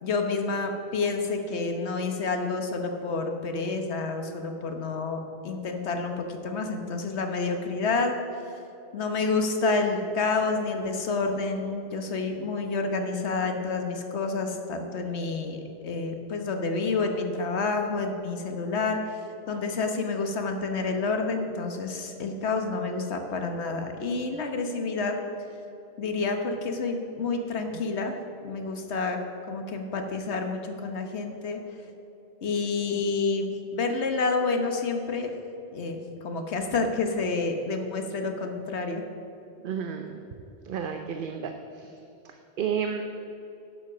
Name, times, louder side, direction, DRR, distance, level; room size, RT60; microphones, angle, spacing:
voice 1, 0.0-8.2 8.9-19.0 19.5-25.2 26.0-28.2 28.4-29.2 29.5-31.6 32.4-35.3 35.7-39.0, left 3 dB, 85° left, 5 dB, 1.3 m, -29 dB
voice 2, 39.6-40.2 40.6-41.9 42.2-43.0, right 7 dB, 60° right, 5 dB, 0.8 m, -32 dB
10.5 x 7.3 x 6.0 m, 2.8 s
omnidirectional pair, 1.1 m